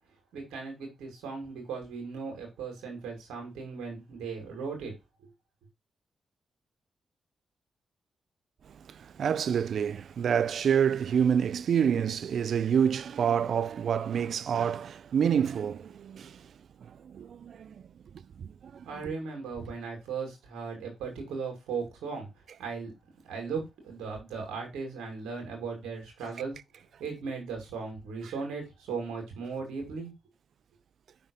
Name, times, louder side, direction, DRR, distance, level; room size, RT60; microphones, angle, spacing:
voice 1, 0.3-4.9 18.8-22.3 22.6-22.9 23.2-26.6 27.0-30.1, right 5 dB, 90° right, 2.2 m, -37 dB
voice 2, 8.6-17.9 18.4-19.1 28.2-28.3, right 8 dB, 70° right, 0.4 m, -28 dB
5.6 x 3.7 x 5.2 m
supercardioid pair, 45°, 0 cm